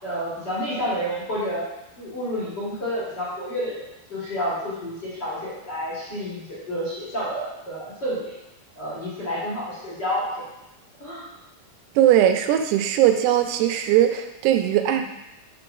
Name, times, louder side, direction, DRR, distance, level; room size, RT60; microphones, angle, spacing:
voice 1, 0.0-1.7 2.0-3.8 4.1-8.3 8.8-10.4 11.0-11.3 14.9-15.0, equal, 35° left, -9 dB, 1.9 m, -29 dB
voice 2, 12.0-15.0, right 11 dB, 85° right, 6 dB, 2.6 m, -19 dB
6.8 x 3.8 x 5.8 m, 0.90 s
omnidirectional pair, 4.7 m